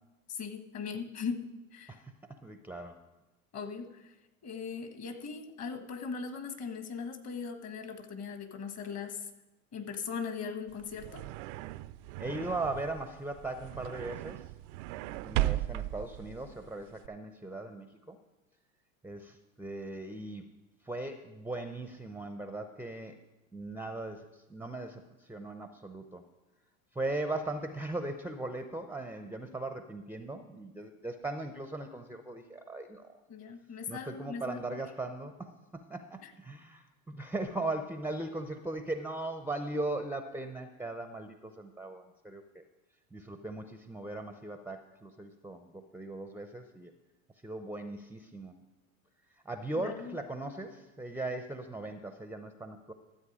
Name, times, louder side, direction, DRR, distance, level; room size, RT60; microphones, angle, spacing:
voice 1, 0.3-2.0 3.5-4.1 4.4-9.3 9.7-11.2 33.3-34.6 36.2-36.3 49.8-50.2, left 5 dB, 35° left, 8 dB, 1.4 m, -39 dB
voice 2, 2.4-3.0 12.2-14.5 15.2-18.2 19.0-20.5 20.8-23.2 23.5-26.2 26.9-33.1 33.9-42.6 43.1-46.9 47.4-48.5 49.4-52.9, right 2 dB, 5° right, 7 dB, 0.6 m, -39 dB
sound 1, 10.7-17.1, right 16 dB, 60° right, 0.5 m, -37 dB
13.0 x 7.8 x 4.9 m, 1.0 s
hypercardioid pair, 95°, 42 cm